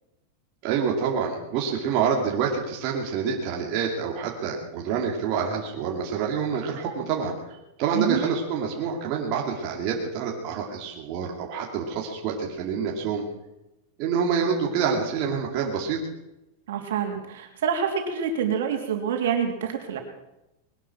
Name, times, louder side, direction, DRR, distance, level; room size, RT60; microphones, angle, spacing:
voice 1, 0.6-7.3 7.8-13.2 14.0-16.0, right 6 dB, 40° right, 0 dB, 2.4 m, -27 dB
voice 2, 7.9-8.2 16.7-20.0, right 7 dB, 75° right, 3 dB, 3.2 m, -27 dB
21.0 x 11.0 x 6.0 m, 0.93 s
supercardioid pair, 170°, 0 cm